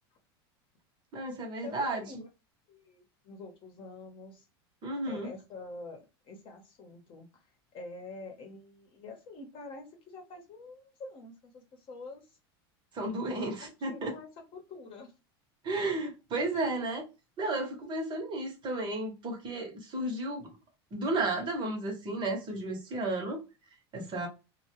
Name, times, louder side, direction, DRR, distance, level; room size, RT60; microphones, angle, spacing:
voice 1, 1.1-2.0 4.8-5.3 12.9-14.1 15.6-17.0 17.4-20.5 20.9-23.4 23.9-24.3, right 2 dB, 35° right, 0.9 m, -33 dB
voice 2, 1.6-2.3 2.7-4.5 5.1-7.5 7.7-12.4 13.3-15.1, left 3 dB, 40° left, 0.9 m, -47 dB
2.2 x 2.2 x 3.0 m
supercardioid pair, 110°, 13 cm